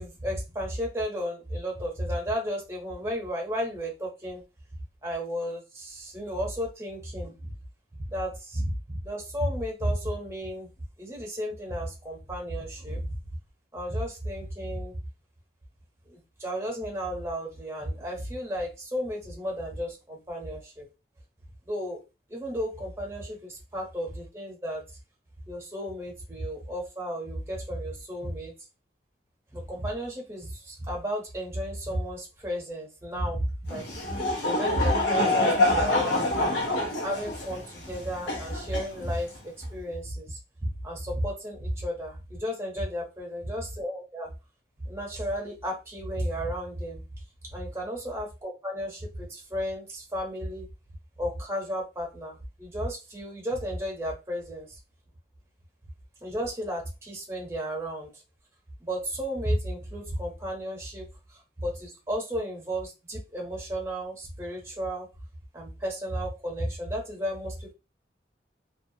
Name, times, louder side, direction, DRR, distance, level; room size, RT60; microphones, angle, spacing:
voice 1, 0.0-4.4 5.0-7.5 8.1-10.7 11.0-13.2 13.7-15.0 16.0-20.9 21.6-22.0 22.3-24.8 25.5-28.5 29.5-34.2 34.4-36.5 37.0-44.3 44.8-47.0 47.5-50.7 51.2-54.8 56.2-58.2 58.8-65.1 65.5-67.7, equal, 15° right, -1 dB, 0.8 m, -33 dB
Laughter / Crowd, 33.7-39.4, left 2 dB, 90° left, 0.7 m, -26 dB
2.3 x 2.2 x 2.7 m, 0.27 s
head